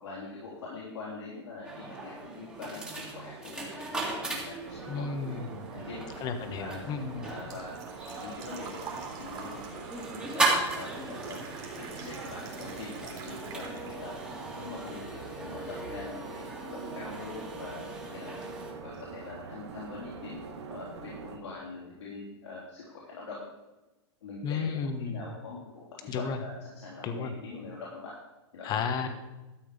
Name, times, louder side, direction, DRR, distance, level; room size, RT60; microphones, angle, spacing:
voice 1, 0.0-5.4 5.7-6.1 6.6-6.8 7.2-7.7 8.2-11.4 11.8-14.1 14.6-17.8 18.1-18.4 18.8-23.4 24.2-28.1 28.5-28.7, left 3 dB, 85° left, -6 dB, 4.0 m, -43 dB
sound 1, 1.6-18.7, right 2 dB, 5° right, 2.1 m, -37 dB
sound 2, 4.6-21.4, right 6 dB, 75° right, 1.5 m, -45 dB
voice 2, 4.9-5.6 6.2-7.3 24.4-25.2 26.1-26.4 27.0-27.3 28.6-29.1, left 5 dB, 30° left, 8 dB, 1.3 m, -33 dB
Engine / Trickle dribble / Fill (with liquid), 6.4-14.3 14.6-15.6 15.9-16.0 17.9-18.0 18.2-18.5 18.9-19.0 19.2-19.3, right 5 dB, 25° right, 2.8 m, -46 dB
13.0 x 7.8 x 5.1 m, 1.0 s
hypercardioid pair, 140°, 15 cm